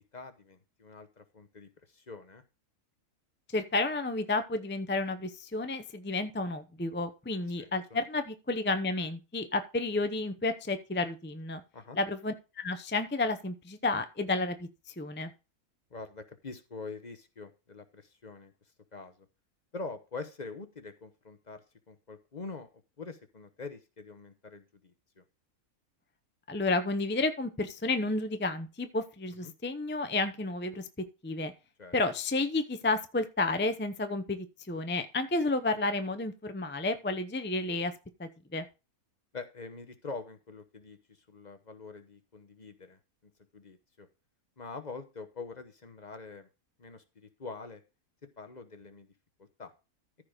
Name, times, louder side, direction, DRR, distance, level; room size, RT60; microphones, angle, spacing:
voice 1, 0.0-2.4 7.6-7.7 11.7-12.0 15.9-18.5 18.9-19.3 19.7-22.7 23.0-25.2 29.4-29.5 31.8-31.9 39.3-43.0 43.5-44.1 44.6-46.5 46.8-47.8 48.2-49.1 49.4-49.7, left 4 dB, 35° left, 9 dB, 1.0 m, -44 dB
voice 2, 3.5-11.6 11.9-14.7 15.0-15.3 26.5-30.9 31.2-31.5 31.9-37.9 38.2-38.6, left 2 dB, 15° left, 9 dB, 0.4 m, -31 dB
14.0 x 4.8 x 5.1 m, 0.29 s
omnidirectional pair, 1.6 m